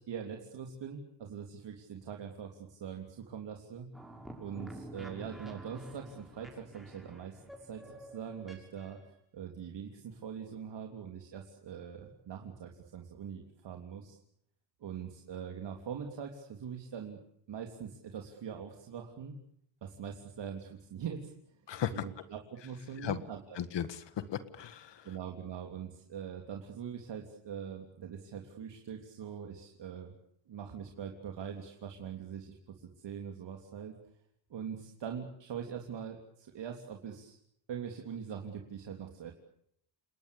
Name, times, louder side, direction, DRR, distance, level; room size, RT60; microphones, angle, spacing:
voice 1, 0.0-3.9 4.4-9.0 9.3-14.2 14.8-17.2 17.5-19.4 19.8-21.5 21.9-23.6 25.0-30.1 30.5-33.9 34.5-37.4 37.7-39.3, right 7 dB, 65° right, 3 dB, 3.4 m, -43 dB
sound 1, 3.9-9.1, right 1 dB, ahead, 6.2 m, -49 dB
voice 2, 21.7-22.0 23.0-23.2 23.6-25.1, left 9 dB, 65° left, 12 dB, 1.8 m, -36 dB
30.0 x 19.5 x 8.6 m, 0.72 s
wide cardioid pair, 150°, 45 cm